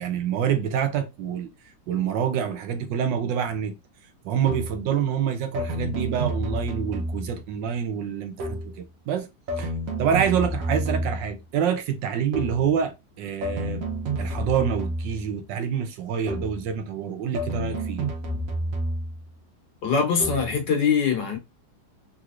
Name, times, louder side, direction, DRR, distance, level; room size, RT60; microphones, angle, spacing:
voice 1, 0.0-1.5 1.9-3.7 4.2-9.3 9.6-9.7 10.0-13.8 14.2-18.1, right 8 dB, 75° right, 1.3 m, -27 dB
sound 1, 4.5-4.9 5.5-7.5 8.4-8.8 9.5-11.4 12.3-12.7 13.4-15.4 16.3-16.7 17.4-19.3 20.2-20.6, right 1 dB, 60° right, 0.9 m, -30 dB
voice 2, 19.8-21.4, left 6 dB, 65° left, 1.5 m, -22 dB
3.4 x 3.0 x 2.4 m
omnidirectional pair, 2.1 m